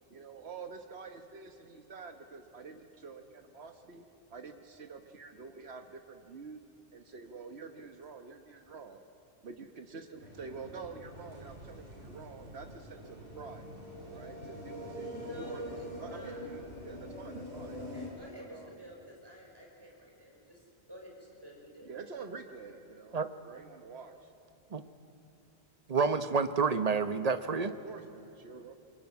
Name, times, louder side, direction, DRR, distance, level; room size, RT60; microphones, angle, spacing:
voice 1, 0.1-6.6 6.9-9.0 9.4-13.7 14.1-17.8 18.4-18.7 21.8-24.3 27.8-28.7, right 4 dB, 85° right, 6 dB, 1.5 m, -47 dB
sound 1, 10.2-18.1, equal, 60° right, 7.0 m, -45 dB
voice 2, 14.9-16.5 17.9-20.6 20.9-22.0, left 1 dB, 20° right, -1 dB, 5.5 m, -49 dB
voice 3, 25.9-27.7, right 5 dB, 40° right, 11 dB, 1.0 m, -29 dB
24.5 x 21.5 x 9.6 m, 2.8 s
omnidirectional pair, 1.1 m